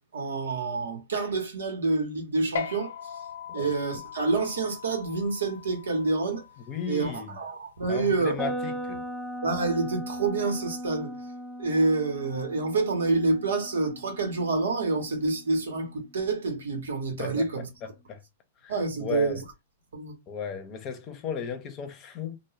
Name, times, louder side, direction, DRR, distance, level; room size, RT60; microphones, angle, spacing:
voice 1, 0.1-2.9 3.5-6.4 6.9-8.5 9.4-11.1 11.6-17.7 18.7-19.3 19.9-20.1, right 3 dB, 90° right, 0.9 m, -27 dB
sound 1, 2.6-9.3, left 6 dB, 80° left, 0.5 m, -40 dB
voice 2, 6.7-7.4 7.9-9.1 17.2-17.5 18.1-18.2 18.6-19.4 20.3-22.4, left 6 dB, 30° left, 0.6 m, -35 dB
sound 2, 8.4-16.3, equal, 10° right, 0.5 m, -38 dB
2.3 x 2.1 x 3.0 m
hypercardioid pair, 130°, 0 cm